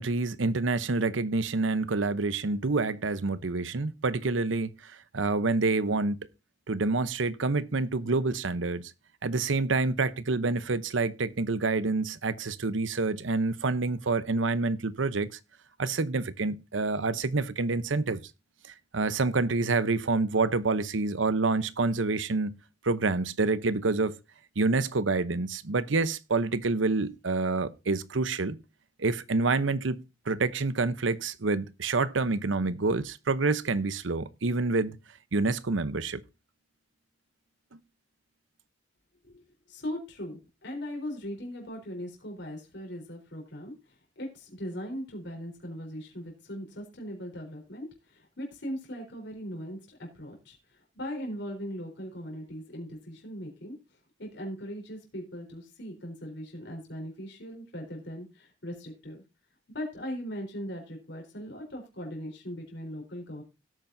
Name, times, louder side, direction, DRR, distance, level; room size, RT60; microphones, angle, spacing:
voice 1, 0.0-6.2 6.7-8.8 9.2-15.3 15.8-18.2 18.9-22.5 22.8-24.1 24.6-28.6 29.0-30.0 30.3-35.0 35.3-36.2, right 3 dB, 90° right, 0.8 m, -27 dB
voice 2, 39.7-53.8 54.2-59.2 59.7-63.4, equal, 65° left, 4.0 m, -39 dB
17.0 x 8.8 x 2.7 m
head